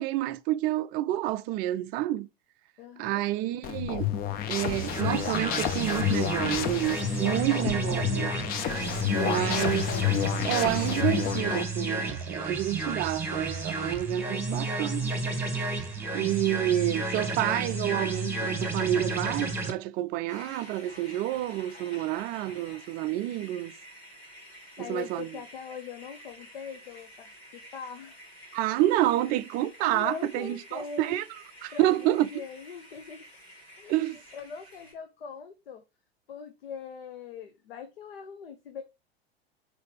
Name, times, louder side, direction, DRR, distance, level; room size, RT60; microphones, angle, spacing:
voice 1, 0.0-2.3 3.0-4.1 4.5-8.3 9.2-10.0 10.4-15.1 16.1-23.7 24.8-25.3 28.5-31.3 31.6-32.3 33.9-34.2, right 14 dB, 30° right, 0.4 m, -29 dB
voice 2, 2.8-3.2 24.8-28.2 29.8-31.2 31.7-33.3 33.8-34.0 34.3-35.8 36.3-38.8, left 6 dB, 65° left, 1.0 m, -41 dB
sound 1, 3.6-11.6, left 10 dB, 30° left, 0.6 m, -30 dB
sound 2, 4.7-19.7, right 2 dB, 5° right, 1.7 m, -32 dB
sound 3, 20.3-34.9, equal, 80° left, 3.1 m, -50 dB
4.9 x 4.0 x 5.1 m
figure-of-eight pair, 85°, 31 cm